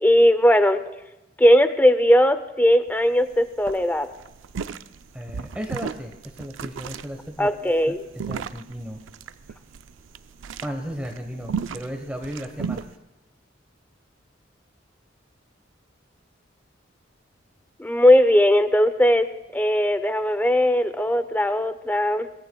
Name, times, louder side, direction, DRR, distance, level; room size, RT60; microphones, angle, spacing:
voice 1, 0.0-0.8 1.4-4.1 7.4-8.0 17.8-22.3, equal, 10° left, 10 dB, 0.6 m, -18 dB
sound 1, 2.9-3.0 3.2-3.4 3.6-12.9, right 6 dB, 90° right, 0.5 m, -35 dB
voice 2, 5.1-9.0 10.6-13.0, equal, 5° right, 2 dB, 1.1 m, -35 dB
23.0 x 19.5 x 2.3 m, 0.97 s
head